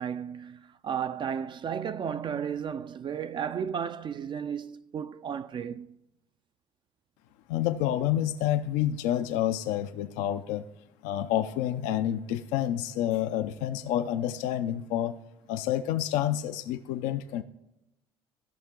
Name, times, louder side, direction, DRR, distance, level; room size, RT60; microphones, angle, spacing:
voice 1, 0.0-6.0, right 8 dB, 40° right, 0.4 m, -34 dB
voice 2, 7.5-10.6 11.0-15.2 15.5-17.4, left 11 dB, 80° left, 0.5 m, -28 dB
15.0 x 5.8 x 3.7 m
supercardioid pair, 75°, 13 cm